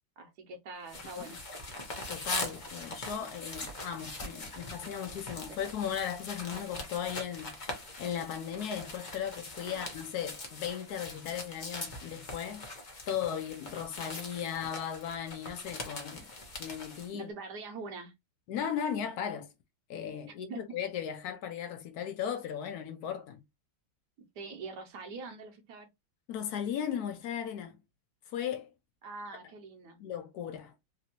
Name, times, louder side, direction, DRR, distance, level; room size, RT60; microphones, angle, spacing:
voice 1, 0.2-1.4 5.5-5.6 9.7-9.9 17.1-18.1 20.5-20.6 24.4-25.9 29.0-30.0, right 3 dB, 70° right, 1.1 m, -43 dB
sound 1, 0.9-17.1, left 2 dB, 45° left, 0.5 m, -42 dB
voice 2, 2.1-7.6 8.0-16.3 16.6-17.3 18.5-19.5 19.9-23.4 26.3-27.8 28.3-28.7 30.0-30.7, left 9 dB, 75° left, 0.9 m, -37 dB
3.3 x 2.6 x 2.8 m
omnidirectional pair, 2.1 m